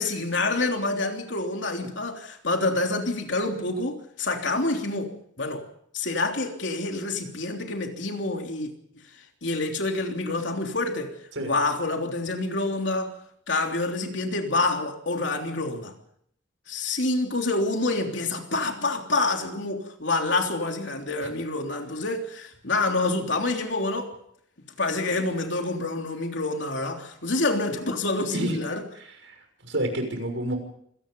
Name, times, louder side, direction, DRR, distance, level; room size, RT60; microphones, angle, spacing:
voice 1, 0.0-5.7 5.9-8.7 9.1-13.2 13.5-15.9 16.7-24.1 24.8-28.8, left 2 dB, 70° left, 3.4 m, -27 dB
voice 2, 29.0-29.4 29.6-30.6, right 1 dB, 80° right, 6.4 m, -29 dB
26.0 x 18.0 x 5.5 m
head